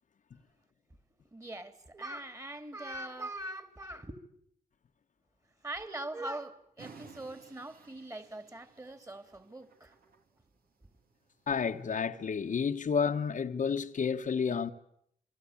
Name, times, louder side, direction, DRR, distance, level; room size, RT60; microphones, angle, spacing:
voice 1, 1.3-4.2 5.6-9.9, right 1 dB, 20° right, 2.7 m, -42 dB
sound 1, 6.8-11.9, right 5 dB, 75° right, 3.1 m, -56 dB
voice 2, 11.5-14.7, left 6 dB, 55° left, 1.2 m, -30 dB
28.0 x 23.0 x 8.6 m
cardioid pair, 75°, 16 cm